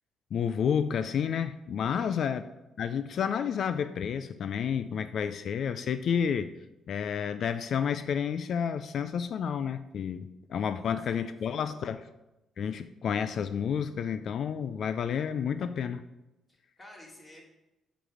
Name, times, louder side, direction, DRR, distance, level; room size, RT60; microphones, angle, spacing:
voice 1, 0.3-2.4 2.8-6.5 6.9-12.0 12.6-16.0, left 7 dB, 65° left, 11 dB, 0.4 m, -30 dB
voice 2, 1.9-2.3 10.6-11.8 16.5-17.4, left 1 dB, 25° left, -3 dB, 2.8 m, -53 dB
8.1 x 4.0 x 6.1 m, 0.96 s
cardioid pair, 90°, 0 cm